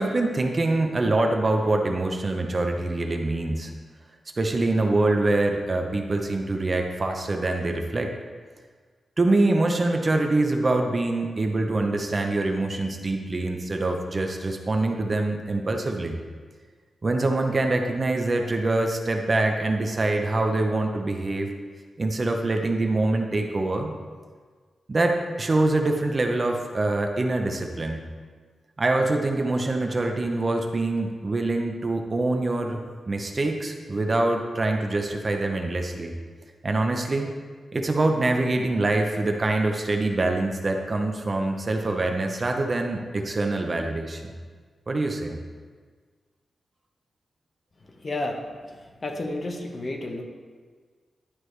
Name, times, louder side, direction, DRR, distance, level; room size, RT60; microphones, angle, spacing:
voice 1, 0.0-3.7 4.4-8.1 9.2-16.2 17.0-21.5 22.0-23.9 24.9-28.0 28.8-32.8 33.1-36.1 36.6-37.3 37.7-44.4 44.9-45.4, right 2 dB, 30° right, 3 dB, 0.7 m, -24 dB
voice 2, 47.8-50.2, left 2 dB, 35° left, 2 dB, 0.8 m, -32 dB
11.0 x 4.7 x 3.2 m, 1.6 s
wide cardioid pair, 125°, 0 cm